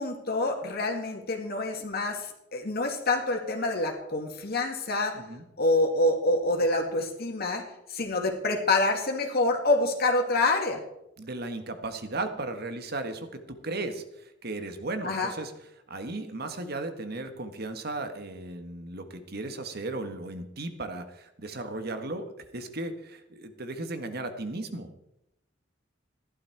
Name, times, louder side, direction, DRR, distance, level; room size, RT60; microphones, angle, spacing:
voice 1, 0.0-5.2 5.6-7.6 7.9-10.8 15.0-15.3, left 2 dB, 55° left, 2 dB, 2.3 m, -27 dB
voice 2, 5.1-5.4 11.2-15.5 15.9-22.3 22.5-24.9, right 2 dB, 55° right, 8 dB, 1.6 m, -36 dB
14.5 x 11.5 x 4.7 m, 0.85 s
head